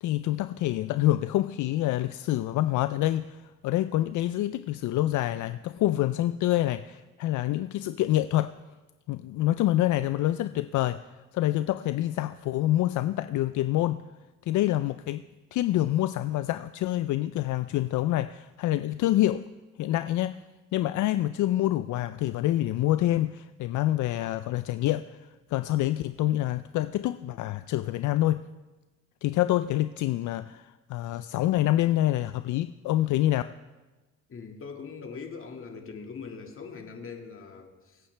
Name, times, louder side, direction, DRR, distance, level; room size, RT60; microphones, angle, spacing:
voice 1, 0.0-3.4 3.6-8.5 9.1-11.0 11.3-14.0 14.5-15.2 15.5-19.4 19.8-20.4 20.7-25.2 25.5-28.4 29.2-33.4, left 14 dB, 75° left, 12 dB, 0.5 m, -26 dB
voice 2, 34.3-38.0, left 5 dB, 45° left, 3 dB, 2.0 m, -41 dB
24.5 x 8.7 x 3.3 m, 1.2 s
cardioid pair, 90°, 30 cm